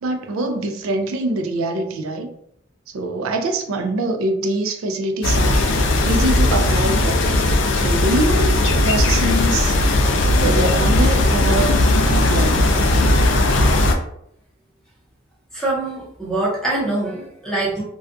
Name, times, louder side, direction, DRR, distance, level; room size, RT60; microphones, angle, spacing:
voice 1, 0.0-2.3 2.9-5.6 6.0-7.2 7.7-9.8 10.4-12.7, right 2 dB, 85° right, 5 dB, 0.4 m, -24 dB
sound 1, 5.2-13.9, left 1 dB, 60° left, 0.3 m, -17 dB
voice 2, 15.5-17.8, right 2 dB, 5° left, -6 dB, 0.6 m, -24 dB
2.3 x 2.2 x 2.5 m, 0.72 s
head